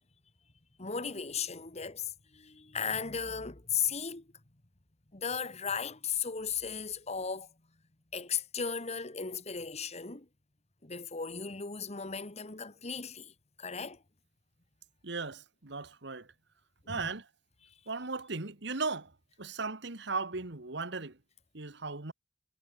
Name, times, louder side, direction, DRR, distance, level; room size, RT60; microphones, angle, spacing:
voice 1, 0.8-4.3 5.1-7.5 8.1-10.3 10.8-14.0 16.9-17.1, left 6 dB, 35° left, 1.8 m, -36 dB
voice 2, 15.0-16.3 16.9-17.3 17.9-19.1 19.4-21.2 21.5-22.1, right 4 dB, 65° right, 1.8 m, -37 dB
head